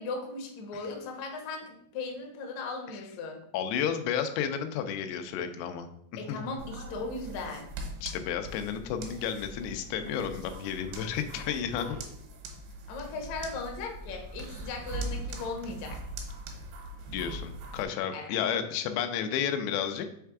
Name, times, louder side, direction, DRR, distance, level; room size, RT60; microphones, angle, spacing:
voice 1, 0.0-3.4 6.2-7.7 12.9-16.0 18.1-18.4, left 3 dB, 70° left, 1 dB, 1.7 m, -37 dB
voice 2, 3.5-6.4 8.0-12.0 17.1-20.1, left 8 dB, 90° left, 8 dB, 2.8 m, -32 dB
sound 1, 6.6-17.8, right 1 dB, 75° right, 2.8 m, -41 dB
6.5 x 3.4 x 4.7 m, 0.71 s
omnidirectional pair, 4.7 m